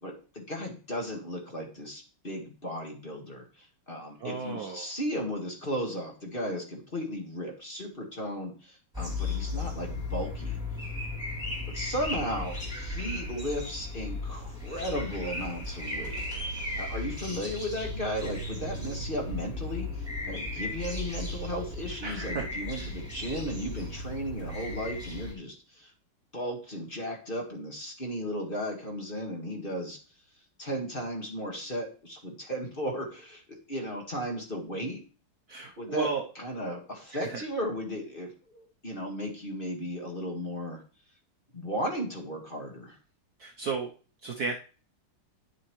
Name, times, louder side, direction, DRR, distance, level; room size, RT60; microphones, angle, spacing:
voice 1, 0.0-10.6 11.7-16.2 16.8-25.9 26.3-30.0 30.6-35.0 35.8-36.1 36.3-40.8 41.5-43.0, equal, 25° left, 1 dB, 1.7 m, -35 dB
voice 2, 4.2-4.9 22.0-22.5 35.5-36.2 37.1-37.4 43.4-43.9 44.2-44.5, right 5 dB, 60° right, 2 dB, 1.1 m, -33 dB
sound 1, 8.9-25.3, left 2 dB, ahead, 3.8 m, -36 dB
10.0 x 7.1 x 3.1 m, 0.38 s
omnidirectional pair, 2.3 m